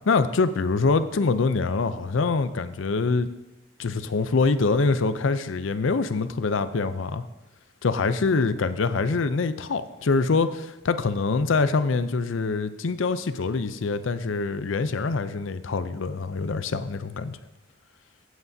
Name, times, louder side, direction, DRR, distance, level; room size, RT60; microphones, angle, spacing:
voice 1, 0.1-3.3 3.8-7.2 7.8-17.4, left 4 dB, 75° left, 11 dB, 0.5 m, -24 dB
15.0 x 8.1 x 2.7 m, 0.98 s
head